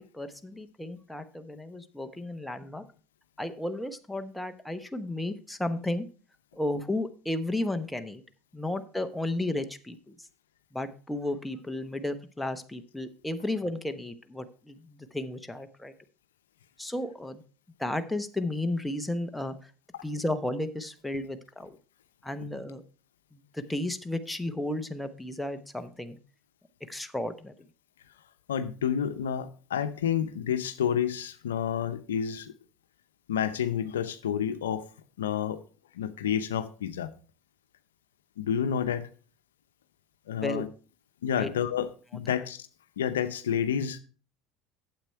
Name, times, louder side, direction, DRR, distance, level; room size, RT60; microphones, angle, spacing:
voice 1, 0.0-2.8 3.4-6.1 6.5-8.2 8.5-10.3 10.7-15.9 16.8-17.4 17.8-19.7 20.0-21.8 22.2-22.8 23.3-26.2 26.9-27.6 40.3-40.7 41.3-41.5, left 1 dB, 5° left, 0.9 m, -33 dB
voice 2, 28.5-32.5 33.3-34.9 35.2-35.6 35.9-37.1 38.4-39.1 40.3-40.7 41.2-42.7 43.0-44.0, left 8 dB, 90° left, 0.7 m, -29 dB
8.9 x 7.6 x 4.4 m
hypercardioid pair, 85°, 0 cm